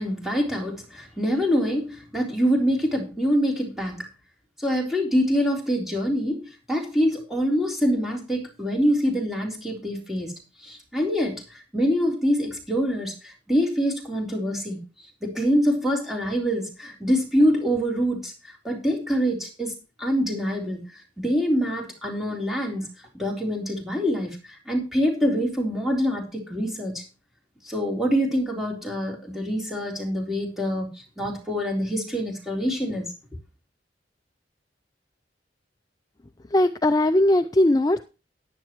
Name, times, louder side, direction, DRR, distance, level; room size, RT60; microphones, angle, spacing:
voice 1, 0.0-4.1 4.6-14.8 15.2-19.7 20.0-22.9 23.1-27.0 27.6-33.1, equal, ahead, 3.7 m, -25 dB
voice 2, 36.5-38.0, left 1 dB, 20° left, 0.5 m, -19 dB
14.5 x 10.5 x 3.1 m
head